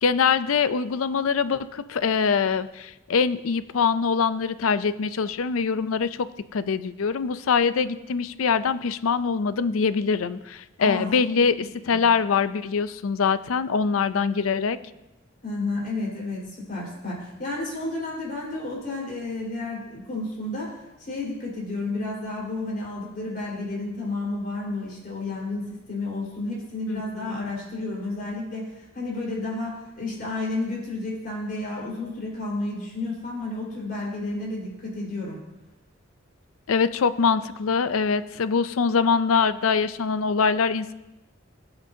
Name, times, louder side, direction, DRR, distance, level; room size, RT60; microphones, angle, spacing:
voice 1, 0.0-14.8 26.9-27.5 36.7-40.9, left 5 dB, 90° left, 14 dB, 0.5 m, -23 dB
voice 2, 10.8-11.1 11.9-12.0 15.4-35.4, left 2 dB, 45° left, -4 dB, 4.2 m, -31 dB
18.5 x 7.9 x 2.8 m, 1.0 s
head